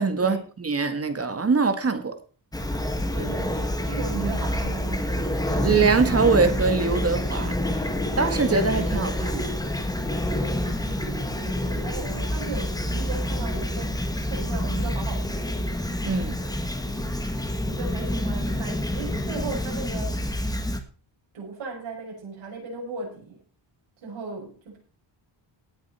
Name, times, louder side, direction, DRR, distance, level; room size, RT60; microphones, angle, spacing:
voice 1, 0.0-2.2 5.5-7.6 8.2-9.6 16.0-16.4, right 4 dB, 30° right, 1.7 m, -23 dB
Fowl / Chirp tweet, 2.5-20.8, left 1 dB, 10° left, 1.6 m, -27 dB
voice 2, 3.1-5.3 10.8-15.5 17.7-20.2 21.3-23.4 24.0-24.8, right 4 dB, 85° right, 6.7 m, -37 dB
18.0 x 7.8 x 4.4 m
wide cardioid pair, 135°, 46 cm